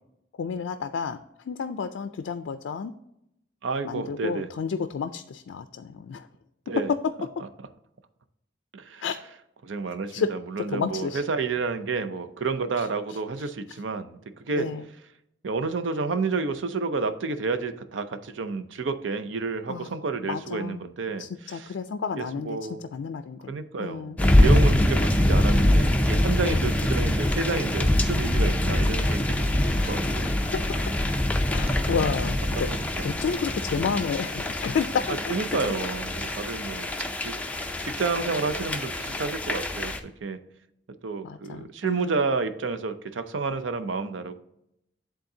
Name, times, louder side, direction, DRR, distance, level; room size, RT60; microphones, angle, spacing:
voice 1, 0.4-1.2 1.4-2.9 3.8-6.3 6.9-7.0 9.0-9.2 10.1-10.3 10.7-11.2 12.8-12.9 14.6-14.8 19.7-19.9 20.2-20.8 21.2-24.2 24.6-24.8 26.4-26.7 29.8-29.9 30.2-30.9 31.5-32.7 33.0-35.3 35.6-35.7 41.2-42.2, left 6 dB, 80° left, 8 dB, 0.4 m, -31 dB
voice 2, 3.6-4.5 6.7-6.9 8.7-9.0 9.6-14.7 15.4-21.7 22.2-22.8 23.5-29.6 29.9-30.3 31.9-32.0 32.7-33.1 35.1-36.9 37.2-40.4 41.0-44.4, right 4 dB, 90° right, 11 dB, 0.6 m, -30 dB
sound 1, 24.2-40.0, left 1 dB, 10° left, 0.5 m, -24 dB
10.5 x 3.8 x 2.7 m, 0.79 s
head